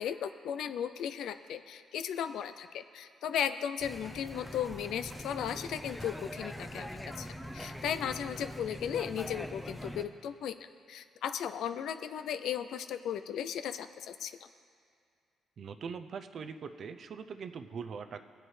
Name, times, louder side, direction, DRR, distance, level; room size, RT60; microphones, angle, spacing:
voice 1, 0.0-6.9 7.2-7.3 7.5-10.6 10.9-14.5, left 9 dB, 75° left, 11 dB, 0.3 m, -36 dB
sound 1, 3.8-10.0, equal, 5° left, 0.6 m, -43 dB
voice 2, 15.6-18.2, right 6 dB, 55° right, 9 dB, 0.5 m, -42 dB
18.0 x 7.8 x 3.2 m, 2.3 s
cardioid pair, 90°, 0 cm